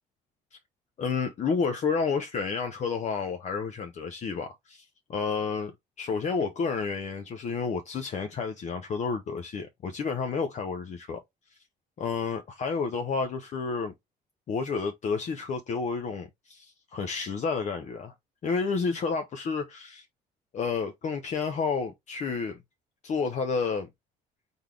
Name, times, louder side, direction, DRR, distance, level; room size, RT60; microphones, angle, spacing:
voice 1, 1.0-4.8 5.1-5.7 6.0-11.2 12.0-13.9 14.5-18.1 18.4-20.0 20.5-22.6 23.0-23.9, left 5 dB, 45° left, 0.7 m, -30 dB
3.9 x 3.7 x 3.2 m
cardioid pair, 110°, 17 cm